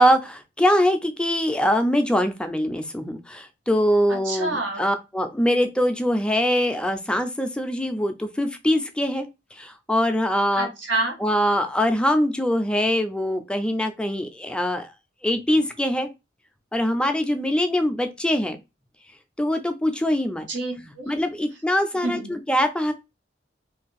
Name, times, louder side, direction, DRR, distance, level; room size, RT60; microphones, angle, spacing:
voice 1, 0.0-10.7 11.2-14.9 15.2-16.1 16.7-18.6 19.4-20.5 21.1-22.9, equal, 5° left, 0.3 m, -23 dB
voice 2, 4.1-4.8 10.6-11.1 20.5-21.1 22.0-22.3, right 2 dB, 90° right, 1.1 m, -28 dB
2.6 x 2.4 x 3.9 m
head